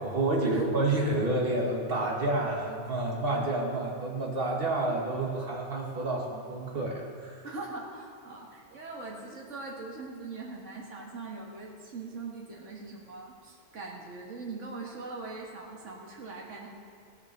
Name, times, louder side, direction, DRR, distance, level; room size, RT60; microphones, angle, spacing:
voice 1, 0.0-7.4, right 2 dB, 50° right, -1 dB, 2.0 m, -29 dB
voice 2, 7.4-16.7, right 3 dB, 85° right, -2 dB, 1.8 m, -41 dB
15.5 x 7.1 x 6.6 m, 2.2 s
omnidirectional pair, 1.2 m